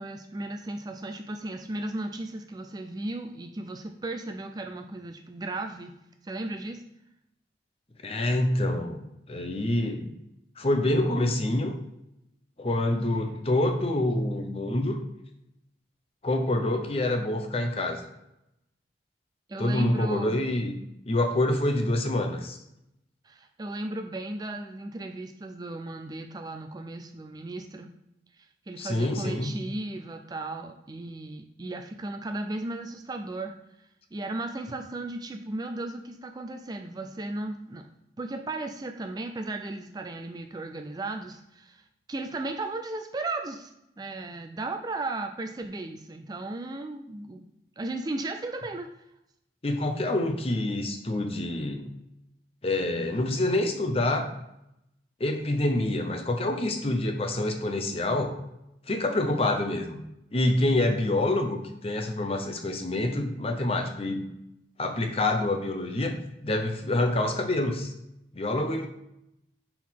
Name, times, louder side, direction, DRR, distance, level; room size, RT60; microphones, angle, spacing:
voice 1, 0.0-5.9 6.2-6.8 19.5-20.4 23.2-27.9 28.4-33.6 34.1-37.9 38.2-43.7 44.0-47.4 47.8-48.9, right 2 dB, 20° right, 5 dB, 0.3 m, -35 dB
voice 2, 8.0-10.1 10.6-11.7 12.6-15.0 16.2-18.0 19.6-20.7 21.1-22.6 28.8-29.5 49.6-51.9 52.6-54.3 55.2-58.4 58.9-60.0 60.3-64.2 64.8-67.9 68.3-68.9, left 1 dB, 30° left, 5 dB, 0.7 m, -27 dB
6.0 x 4.6 x 3.6 m, 0.84 s
head